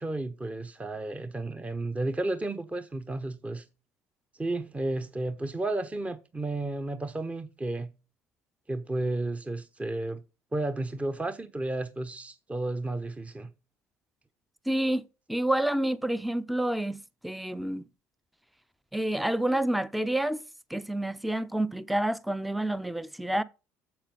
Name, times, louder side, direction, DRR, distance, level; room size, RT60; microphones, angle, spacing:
voice 1, 0.0-3.6 4.4-7.9 8.7-10.2 10.5-13.5, right 2 dB, 15° right, 1.0 m, -32 dB
voice 2, 14.7-17.8 18.9-20.4 20.7-23.4, right 1 dB, ahead, 0.6 m, -29 dB
8.9 x 7.5 x 5.4 m
figure-of-eight pair, 60°, 8 cm